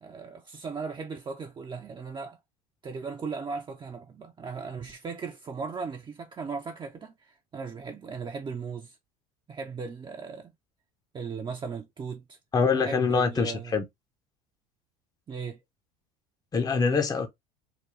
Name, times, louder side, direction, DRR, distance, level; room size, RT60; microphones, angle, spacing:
voice 1, 0.0-2.4 2.8-9.0 9.5-10.5 11.1-12.4 12.7-13.8 15.3-15.6, right 5 dB, 25° right, 0.6 m, -37 dB
voice 2, 12.5-13.8 16.5-17.3, left 5 dB, 20° left, 0.7 m, -24 dB
3.6 x 2.2 x 3.1 m
hypercardioid pair, 80°, 19 cm